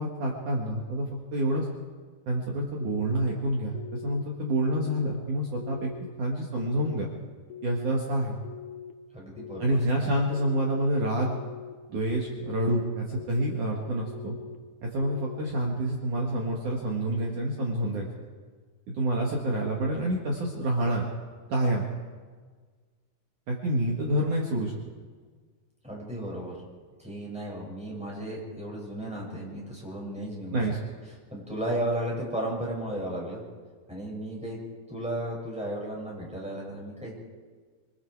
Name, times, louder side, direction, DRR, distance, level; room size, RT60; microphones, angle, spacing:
voice 1, 0.0-1.7 2.3-5.9 6.2-7.1 7.6-8.4 9.6-11.4 11.9-14.4 14.8-18.1 18.9-21.1 21.5-21.8 23.5-24.7 30.5-30.8, right 1 dB, 50° right, -2 dB, 2.8 m, -28 dB
sound 1, 2.8-3.3 3.7-4.2 4.7-5.2 5.6-6.1 6.6-7.1 7.5-8.0 8.4-8.9 9.4-9.9 10.3-10.8 11.2-11.7 12.2-12.7 13.1-13.6 14.1-14.6 15.0-15.5, left 9 dB, 80° left, 1.8 m, -42 dB
voice 2, 9.1-10.0 25.8-26.6 27.0-30.8 31.3-33.4 33.9-34.6 34.9-37.1, right 1 dB, ahead, -3 dB, 6.6 m, -34 dB
25.5 x 22.5 x 4.9 m, 1.5 s
omnidirectional pair, 5.6 m